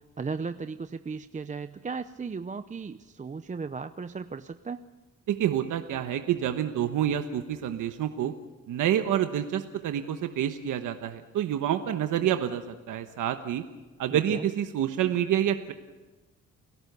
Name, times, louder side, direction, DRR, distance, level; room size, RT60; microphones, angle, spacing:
voice 1, 0.0-4.8 14.1-14.5, right 5 dB, 25° right, 11 dB, 0.6 m, -36 dB
voice 2, 5.3-8.3 8.7-13.6 14.0-15.7, right 10 dB, 85° right, 7 dB, 1.2 m, -28 dB
30.0 x 17.0 x 6.9 m, 1.2 s
cardioid pair, 100°, 31 cm